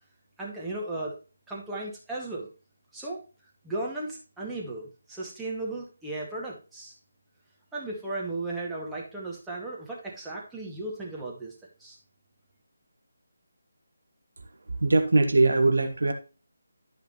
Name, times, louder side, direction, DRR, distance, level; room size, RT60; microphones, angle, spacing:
voice 1, 0.4-1.2 1.5-2.5 2.9-3.2 3.6-6.9 7.7-11.5 11.8-12.0, right 2 dB, 5° right, -5 dB, 2.1 m, -35 dB
voice 2, 14.7-16.1, right 2 dB, 65° right, 5 dB, 1.7 m, -21 dB
13.0 x 5.1 x 3.1 m, 0.32 s
figure-of-eight pair, 155°, 0 cm